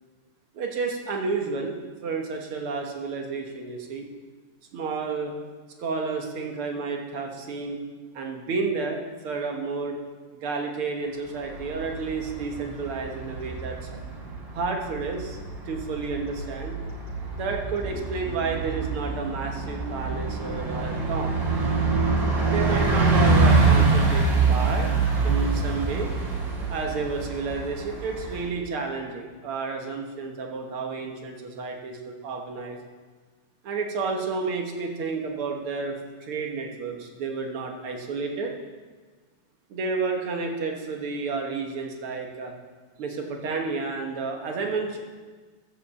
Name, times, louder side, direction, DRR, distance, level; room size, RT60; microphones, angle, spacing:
voice 1, 0.5-1.8 2.0-4.1 4.7-5.3 5.8-7.8 8.1-10.0 10.4-13.8 14.5-15.4 15.7-16.8 17.3-21.4 22.5-24.9 25.2-26.1 26.7-32.8 33.6-38.5 39.7-42.5 43.0-45.0, right 4 dB, 80° right, 2 dB, 2.3 m, -31 dB
Bus, 11.4-28.5, right 3 dB, 60° right, 2.7 m, -25 dB
11.5 x 7.8 x 7.0 m, 1.4 s
omnidirectional pair, 2.4 m